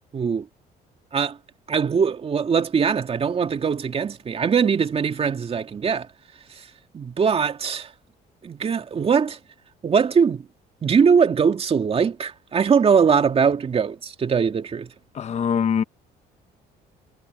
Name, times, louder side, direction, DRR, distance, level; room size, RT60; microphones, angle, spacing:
voice 1, 0.1-0.5 1.1-1.4 1.7-6.1 6.6-6.7 6.9-7.9 8.4-9.4 9.8-10.5 10.8-14.9, right 6 dB, 35° right, 2.5 m, -21 dB
voice 2, 15.1-15.8, left 7 dB, 40° left, 0.9 m, -22 dB
cardioid pair, 110°, 17 cm